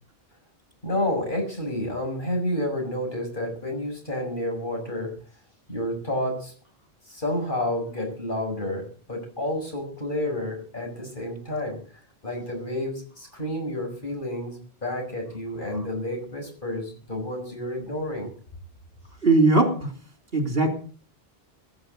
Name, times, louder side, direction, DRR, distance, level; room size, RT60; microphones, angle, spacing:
voice 1, 0.8-5.1 5.7-6.5 7.1-11.8 12.2-18.3, left 1 dB, 55° left, 2 dB, 6.9 m, -30 dB
voice 2, 19.2-19.9 20.3-20.7, right 2 dB, 65° right, 5 dB, 3.7 m, -19 dB
17.5 x 8.8 x 7.9 m, 0.42 s
omnidirectional pair, 1.0 m